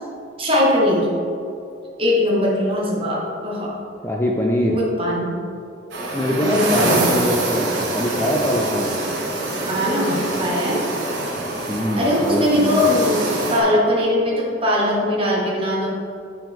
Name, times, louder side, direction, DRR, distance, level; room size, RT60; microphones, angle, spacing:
voice 1, 0.4-1.1 2.0-3.7 4.6-5.3 6.4-7.4 9.5-10.8 12.0-13.2 13.5-15.9, left 1 dB, 30° right, -4 dB, 1.4 m, -20 dB
voice 2, 4.0-4.8 6.1-9.0 11.7-12.9, equal, 10° left, 0 dB, 0.4 m, -23 dB
sound 1, 5.9-13.6, right 2 dB, 70° right, 1.5 m, -25 dB
6.9 x 5.8 x 3.6 m, 2.6 s
head